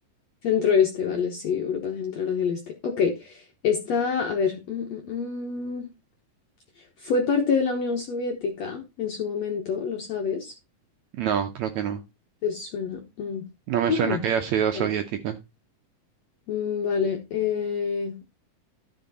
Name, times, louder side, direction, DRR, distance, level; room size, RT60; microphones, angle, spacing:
voice 1, 0.4-5.9 7.0-10.5 12.4-13.5 13.9-14.2 14.7-14.9 16.5-18.2, left 6 dB, 60° left, 1.9 m, -26 dB
voice 2, 11.2-12.0 13.7-15.4, right 9 dB, 75° right, 1.7 m, -26 dB
13.0 x 5.1 x 4.1 m
omnidirectional pair, 4.1 m